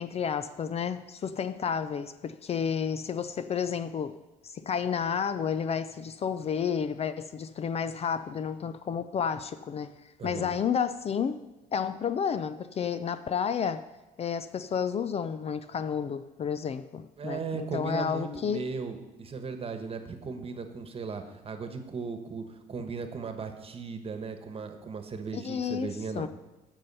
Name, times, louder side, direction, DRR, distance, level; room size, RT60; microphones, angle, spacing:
voice 1, 0.0-4.1 4.4-9.9 10.2-11.4 11.7-13.8 14.2-18.6 25.3-26.3, left 7 dB, 35° left, 12 dB, 0.4 m, -31 dB
voice 2, 10.2-10.5 17.2-26.3, right 5 dB, 35° right, 7 dB, 1.3 m, -37 dB
14.5 x 5.5 x 5.5 m, 1.1 s
cardioid pair, 110°, 17 cm